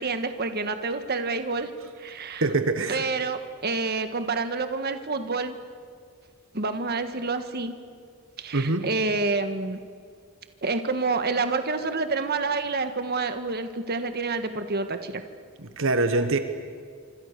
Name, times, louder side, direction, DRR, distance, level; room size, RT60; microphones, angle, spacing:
voice 1, 0.0-1.7 2.0-2.5 2.9-5.6 6.5-7.7 8.4-9.8 10.6-15.2, right 3 dB, 50° right, 8 dB, 1.6 m, -28 dB
voice 2, 2.4-3.0 8.5-8.9 15.6-16.4, right 2 dB, 65° right, 8 dB, 1.5 m, -24 dB
26.5 x 26.0 x 6.8 m, 2.1 s
head